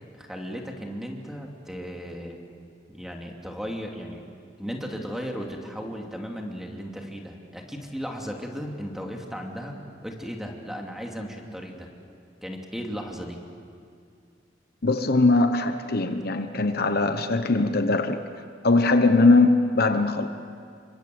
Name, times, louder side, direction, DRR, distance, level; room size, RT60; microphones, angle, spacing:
voice 1, 0.1-2.4 2.9-4.2 4.6-9.7 10.0-11.9 12.4-13.4, equal, ahead, 1 dB, 2.8 m, -35 dB
voice 2, 14.8-18.2 18.6-20.3, left 3 dB, 55° left, 8 dB, 1.1 m, -21 dB
28.5 x 25.0 x 7.9 m, 2.3 s
head